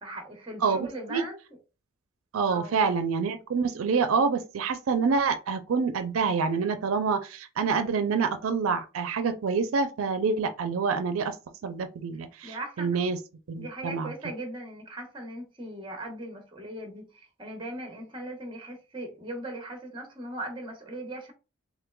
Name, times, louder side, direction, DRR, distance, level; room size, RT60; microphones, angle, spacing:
voice 1, 0.0-1.4 2.5-2.8 12.4-12.9 13.6-21.3, right 1 dB, 25° right, 1.0 m, -39 dB
voice 2, 0.6-1.2 2.3-11.4 11.6-13.2 13.5-14.1, right 5 dB, 90° right, 0.4 m, -27 dB
3.6 x 3.1 x 2.2 m
head